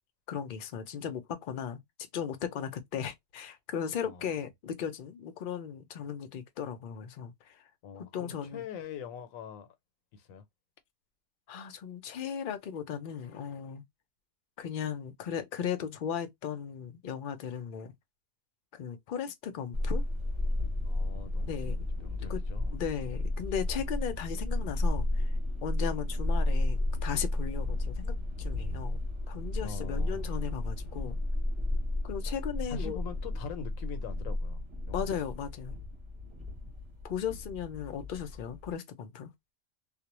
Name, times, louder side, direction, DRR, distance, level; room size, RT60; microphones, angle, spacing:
voice 1, 0.3-1.8 2.1-7.7 7.9-8.6 11.5-13.8 14.6-17.9 18.7-20.0 21.5-21.8 22.3-22.4 22.7-25.3 25.6-29.0 29.3-31.2 32.0-33.0 34.9-35.8 37.0-39.3, left 8 dB, 60° left, 0.5 m, -37 dB
voice 2, 4.0-4.4 7.8-9.7 10.1-10.4 20.8-22.7 29.6-30.3 32.7-35.2, left 6 dB, 90° left, 1.0 m, -43 dB
sound 1, 19.7-38.7, left 1 dB, 30° right, 0.9 m, -33 dB
2.4 x 2.1 x 2.9 m
omnidirectional pair, 1.4 m